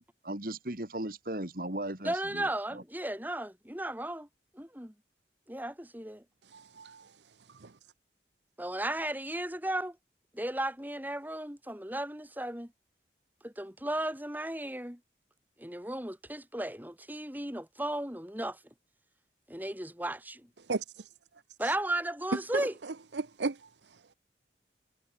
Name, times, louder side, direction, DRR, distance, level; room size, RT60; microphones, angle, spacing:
voice 1, 0.0-2.8, right 1 dB, 50° right, 2.9 m, -37 dB
voice 2, 2.0-4.3 4.5-4.9 5.5-6.2 8.6-10.0 10.3-12.7 13.4-15.0 15.6-18.6 19.5-20.4 21.6-22.7, right 1 dB, 10° right, 4.4 m, -35 dB
voice 3, 6.5-7.1 7.5-7.7 20.7-21.1 22.5-23.7, right 3 dB, 85° right, 0.9 m, -36 dB
head